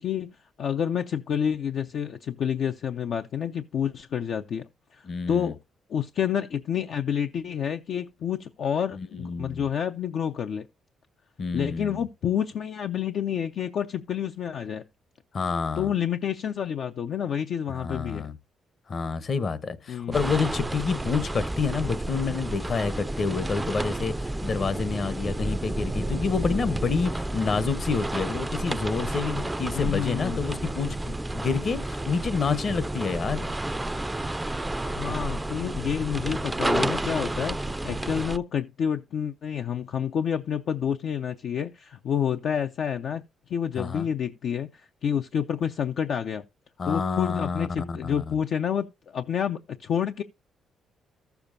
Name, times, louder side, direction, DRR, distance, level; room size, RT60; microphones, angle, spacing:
voice 1, 0.0-4.6 4.9-5.6 5.9-10.7 11.5-14.8 15.8-18.3 19.9-20.3 29.7-30.4 34.8-43.2 43.5-46.4 46.9-50.2, left 8 dB, 65° left, 0.4 m, -29 dB
voice 2, 5.0-5.5 9.0-9.7 11.4-12.0 15.3-15.9 17.7-18.3 18.9-33.5 43.7-44.1 46.8-48.2, left 5 dB, 45° left, 0.9 m, -28 dB
sound 1, 20.1-38.4, right 1 dB, 15° right, 0.4 m, -31 dB
14.0 x 6.9 x 2.5 m
cardioid pair, 90°, 0 cm